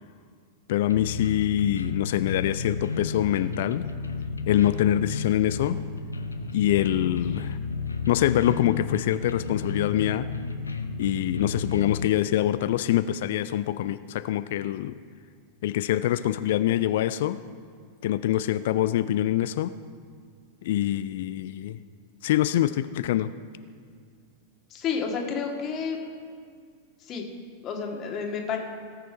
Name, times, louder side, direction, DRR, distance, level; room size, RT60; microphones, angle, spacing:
voice 1, 0.7-3.9 4.5-5.8 6.5-7.6 8.1-10.3 11.0-15.0 15.6-17.4 18.0-19.7 20.6-21.8 22.2-23.3, left 12 dB, 55° left, 14 dB, 0.3 m, -25 dB
sound 1, 0.9-12.1, left 4 dB, 80° left, 0.7 m, -33 dB
voice 2, 24.7-26.0 27.0-27.2 27.6-28.6, left 6 dB, 35° left, 1 dB, 1.8 m, -30 dB
18.5 x 6.7 x 4.6 m, 2.2 s
figure-of-eight pair, 90°, 0 cm